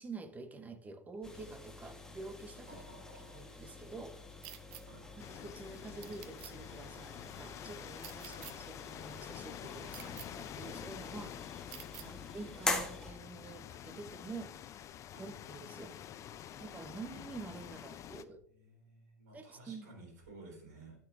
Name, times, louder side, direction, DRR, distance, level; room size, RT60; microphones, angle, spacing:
voice 1, 0.0-2.8 3.3-4.2 5.2-11.4 12.0-14.5 15.2-15.9 16.6-18.4 19.3-19.9, right 3 dB, 15° right, 0.8 m, -48 dB
sound 1, 1.2-13.1, left 2 dB, 5° left, 1.2 m, -44 dB
voice 2, 2.7-3.4 4.9-5.0 8.3-8.5 12.0-12.2 15.1-15.3 17.9-21.0, right 2 dB, 75° right, 3.6 m, -55 dB
sound 2, 4.4-4.8 6.0-6.5 8.0-8.5 9.9-10.3 11.7-12.1, right 13 dB, 55° right, 0.7 m, -49 dB
sound 3, 5.2-18.2, left 10 dB, 35° left, 0.4 m, -48 dB
11.5 x 6.2 x 2.5 m
hypercardioid pair, 100°, 9 cm